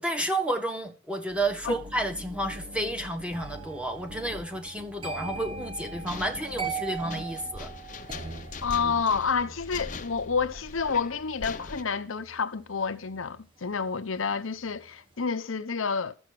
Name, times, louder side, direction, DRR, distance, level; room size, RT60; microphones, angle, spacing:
voice 1, 0.0-7.7, right 1 dB, 5° right, 1.4 m, -31 dB
sound 1, 1.3-7.6, left 1 dB, 60° right, 1.3 m, -45 dB
sound 2, 3.3-14.3 14.6-14.9, right 5 dB, 25° right, 1.2 m, -41 dB
sound 3, 5.7-11.8, left 4 dB, 40° left, 0.8 m, -42 dB
voice 2, 8.6-16.1, left 5 dB, 85° left, 0.9 m, -29 dB
13.5 x 7.2 x 6.4 m
head